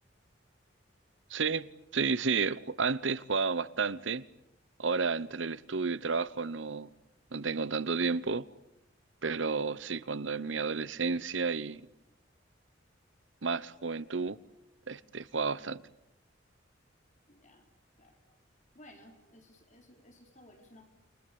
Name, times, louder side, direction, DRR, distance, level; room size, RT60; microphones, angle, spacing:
voice 1, 1.3-4.2 4.8-6.9 7.3-8.5 9.2-11.8 13.4-14.4 14.9-15.8, right 4 dB, 75° right, 1.0 m, -31 dB
voice 2, 17.3-17.6 18.0-18.2 18.7-20.8, left 1 dB, 40° left, 4.2 m, -57 dB
29.0 x 23.5 x 8.7 m
head